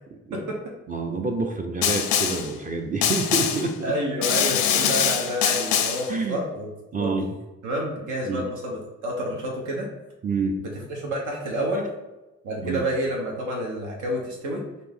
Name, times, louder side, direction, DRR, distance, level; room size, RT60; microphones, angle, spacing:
voice 1, 0.9-3.9 6.1-6.4 6.9-7.3 8.3-8.5 10.2-10.6 12.6-12.8, right 3 dB, 25° right, 3 dB, 0.5 m, -27 dB
Snare drum, 1.8-2.5 3.0-3.7 4.2-6.1, left 9 dB, 80° left, 0.5 m, -23 dB
voice 2, 3.8-6.7 7.0-7.1 7.6-9.9 10.6-11.9 12.4-14.6, equal, 85° right, -2 dB, 0.9 m, -29 dB
4.1 x 2.6 x 3.5 m, 1.1 s
cardioid pair, 90°, 30 cm